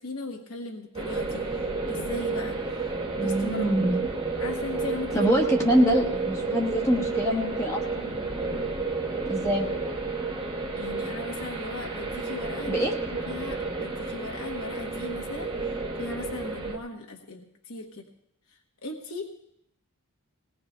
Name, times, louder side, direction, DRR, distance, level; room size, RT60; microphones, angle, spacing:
voice 1, 0.0-2.9 3.2-3.7 4.4-5.3 5.6-6.0 10.7-18.1 18.5-19.3, left 3 dB, 70° left, 2 dB, 1.0 m, -38 dB
sound 1, 0.9-16.8, right 3 dB, 20° right, 0.9 m, -31 dB
voice 2, 3.2-4.0 5.1-8.2 9.3-9.7 12.7-12.9, equal, 10° left, -1 dB, 1.0 m, -25 dB
20.5 x 18.5 x 2.2 m, 0.77 s
head